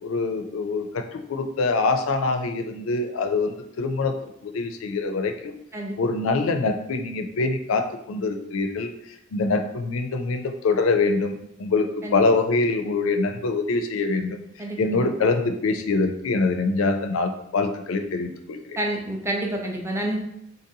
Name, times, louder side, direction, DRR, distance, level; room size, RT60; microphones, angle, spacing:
voice 1, 0.0-4.2 4.4-5.5 6.0-8.9 9.3-11.3 11.6-14.4 14.8-18.8, left 3 dB, 90° left, 7 dB, 0.4 m, -24 dB
voice 2, 14.6-15.1 18.8-20.2, right 1 dB, 15° right, 0 dB, 0.5 m, -28 dB
4.0 x 2.6 x 2.7 m, 0.76 s
head